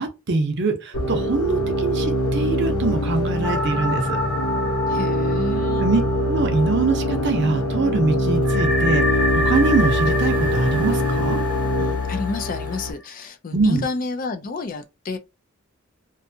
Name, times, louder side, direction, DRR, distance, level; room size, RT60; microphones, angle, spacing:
voice 1, 0.0-4.2 5.8-6.0 6.3-9.0 9.3-11.4 13.5-13.9, right 3 dB, 55° right, 0.6 m, -23 dB
sound 1, 0.9-12.9, equal, 85° left, 0.8 m, -23 dB
sound 2, 3.4-7.4 7.7-7.8 8.4-13.1, left 1 dB, 5° left, 0.7 m, -28 dB
voice 2, 4.9-5.9 11.8-15.2, left 3 dB, 40° left, 0.4 m, -30 dB
2.5 x 2.3 x 2.6 m
head